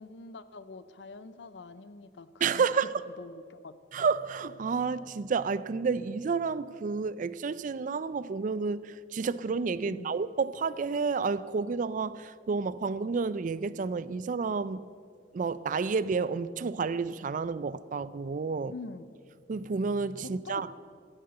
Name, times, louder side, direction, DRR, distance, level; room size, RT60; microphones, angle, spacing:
voice 1, 0.0-2.9 3.2-3.7 9.9-10.2 18.7-19.1 20.2-20.6, left 3 dB, 75° left, 0.6 m, -45 dB
voice 2, 2.4-2.9 3.9-14.9 15.3-18.7 19.5-20.7, right 5 dB, 45° right, 0.4 m, -30 dB
14.5 x 6.6 x 8.0 m
head